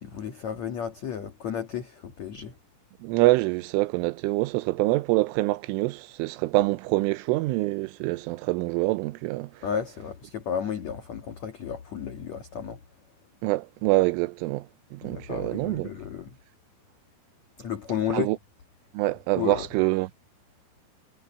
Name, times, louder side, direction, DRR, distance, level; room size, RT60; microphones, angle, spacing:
voice 1, 0.0-2.6 9.6-12.8 15.0-16.4 17.6-18.4 19.3-19.7, left 8 dB, 55° left, 2.0 m, -33 dB
voice 2, 3.0-9.5 13.4-14.7 14.9-15.9 18.1-18.4 18.9-20.1, right 21 dB, 85° right, 3.2 m, -25 dB
omnidirectional pair, 5.7 m